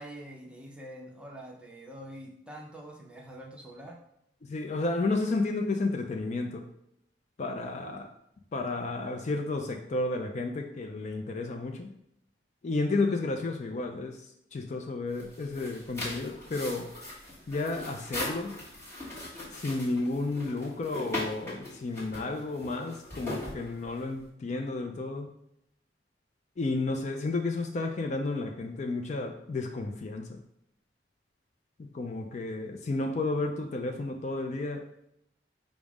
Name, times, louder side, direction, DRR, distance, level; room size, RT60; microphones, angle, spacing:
voice 1, 0.0-4.0, right 1 dB, 5° right, -1 dB, 0.7 m, -45 dB
voice 2, 4.4-6.7 7.4-8.1 8.5-11.9 12.6-16.9 17.5-18.6 19.5-25.3 26.6-30.4 31.8-34.8, left 3 dB, 40° left, 4 dB, 0.4 m, -32 dB
unpacking gift, 15.1-24.2, left 1 dB, 15° left, 1.3 m, -39 dB
5.2 x 2.1 x 4.8 m, 0.77 s
head